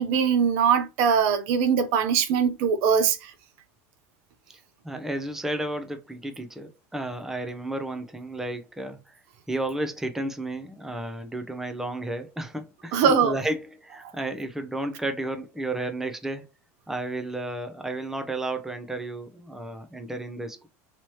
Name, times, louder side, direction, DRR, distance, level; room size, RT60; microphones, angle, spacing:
voice 1, 0.0-3.2 12.9-13.4, right 7 dB, 70° right, 0.8 m, -21 dB
voice 2, 4.8-9.2 9.5-16.5 16.9-20.7, right 1 dB, 5° right, 0.7 m, -32 dB
3.1 x 3.0 x 4.5 m
supercardioid pair, 110°, 8 cm